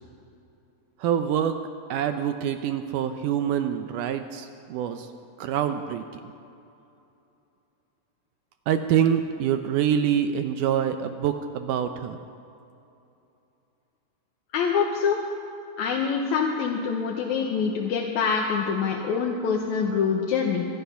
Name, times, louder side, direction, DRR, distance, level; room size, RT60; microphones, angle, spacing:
voice 1, 1.0-1.6 1.9-5.1 5.4-6.0 8.7-12.2, right 9 dB, 80° right, 7 dB, 2.0 m, -25 dB
voice 2, 14.5-15.2 15.8-20.7, left 6 dB, 70° left, 0 dB, 2.1 m, -25 dB
24.0 x 10.5 x 5.7 m, 2.8 s
omnidirectional pair, 4.0 m